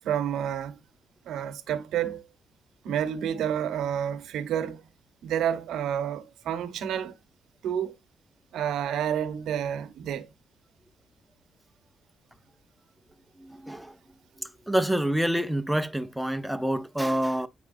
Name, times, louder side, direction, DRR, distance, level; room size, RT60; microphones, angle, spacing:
voice 1, 0.0-0.8 1.3-2.2 2.8-4.8 5.2-7.1 7.6-7.9 8.5-10.3, right 9 dB, 80° right, 1.0 m, -29 dB
voice 2, 14.7-17.5, right 1 dB, 5° right, 0.5 m, -26 dB
8.5 x 5.8 x 2.6 m
cardioid pair, 160°, 0 cm